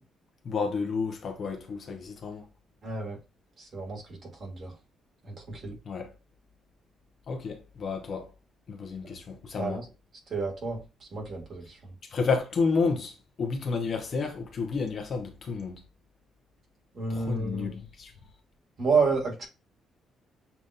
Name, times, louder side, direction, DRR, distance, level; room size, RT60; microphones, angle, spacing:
voice 1, 0.4-2.4 5.9-6.1 7.3-8.3 8.7-9.8 12.1-15.8 17.1-18.1, left 4 dB, 40° left, 0.9 m, -31 dB
voice 2, 2.8-3.2 3.6-4.0 4.4-4.7 5.2-5.7 9.5-9.8 10.3-10.8 11.1-11.6 16.9-17.8 18.8-19.5, right 4 dB, 35° right, 2.0 m, -29 dB
6.8 x 3.1 x 2.5 m
cardioid pair, 160°, 0 cm